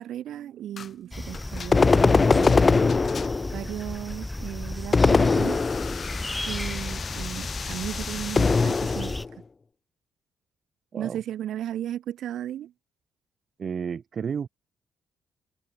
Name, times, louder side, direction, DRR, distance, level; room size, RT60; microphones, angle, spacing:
voice 1, 0.0-2.8 3.5-5.6 6.5-9.1 11.0-12.7, right 11 dB, 75° right, 2.4 m, -35 dB
sound 1, 0.8-1.0 1.3-3.6 5.0-9.2, left 6 dB, 45° left, 1.4 m, -39 dB
sound 2, 1.1-9.3, left 1 dB, 10° left, 1.8 m, -35 dB
sound 3, 1.7-3.7 4.9-6.1 8.4-9.3, left 4 dB, 30° left, 0.5 m, -21 dB
voice 2, 13.6-14.5, right 7 dB, 50° right, 3.0 m, -31 dB
cardioid pair, 90°, 0 cm